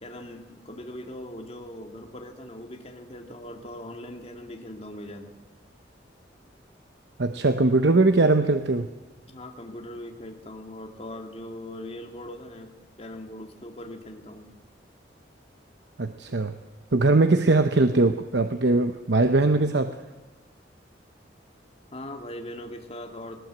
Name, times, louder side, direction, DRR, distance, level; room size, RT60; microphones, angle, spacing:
voice 1, 0.0-5.3 9.3-14.5 21.9-23.4, left 1 dB, 35° left, 2 dB, 2.2 m, -40 dB
voice 2, 7.2-8.9 16.0-16.5 16.9-20.0, right 2 dB, 70° right, 8 dB, 0.9 m, -21 dB
19.5 x 18.5 x 8.0 m, 1.2 s
head